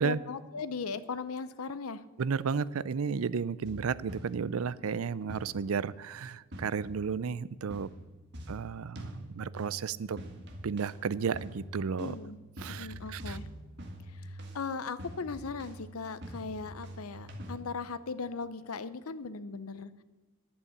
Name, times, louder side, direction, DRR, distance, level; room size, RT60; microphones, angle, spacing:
voice 1, 0.0-2.0 12.0-12.4 12.7-13.5 14.1-19.9, left 4 dB, 85° left, 14 dB, 0.7 m, -38 dB
voice 2, 2.2-7.9 8.5-10.2 10.6-12.1 12.6-13.4, right 6 dB, 80° right, 19 dB, 0.4 m, -33 dB
sound 1, 3.6-4.7 5.3-5.9 6.5-7.3 7.7-17.5, equal, 50° right, 1.7 m, -45 dB
11.0 x 8.7 x 8.0 m, 1.3 s
head